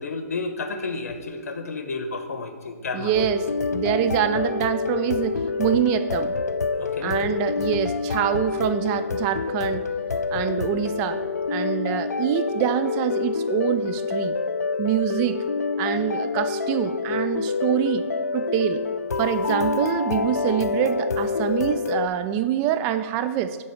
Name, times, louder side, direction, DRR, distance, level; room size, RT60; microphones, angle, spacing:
voice 1, 0.0-3.1 6.8-7.2, left 3 dB, 65° left, 7 dB, 1.1 m, -31 dB
voice 2, 2.9-6.3 7.0-9.8 10.3-11.2 11.5-14.4 14.8-15.4 15.8-18.1 18.3-18.8 19.2-23.6, right 11 dB, 25° right, 10 dB, 0.4 m, -25 dB
sound 1, 3.1-22.1, left 4 dB, 80° left, 0.5 m, -27 dB
9.1 x 3.6 x 6.8 m, 1.5 s
hypercardioid pair, 130°, 9 cm